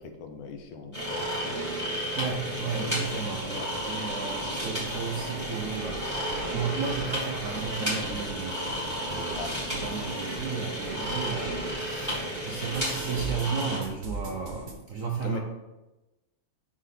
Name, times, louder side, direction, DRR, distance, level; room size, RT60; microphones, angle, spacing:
voice 1, 0.0-1.8 2.4-3.7 9.3-9.5 15.2-15.4, left 4 dB, 80° left, 5 dB, 1.5 m, -40 dB
sound 1, 0.9-13.8, equal, 10° left, 2.1 m, -32 dB
voice 2, 2.1-9.4 9.7-15.4, right 6 dB, 65° right, 0 dB, 0.8 m, -34 dB
sound 2, 3.8-11.8 12.1-14.7, right 3 dB, 45° right, 1.1 m, -41 dB
Wind instrument woodwind instrument, 4.0-7.3 7.6-11.4, left 2 dB, 25° left, 2.1 m, -51 dB
5.7 x 5.0 x 4.2 m, 1.0 s
omnidirectional pair, 2.2 m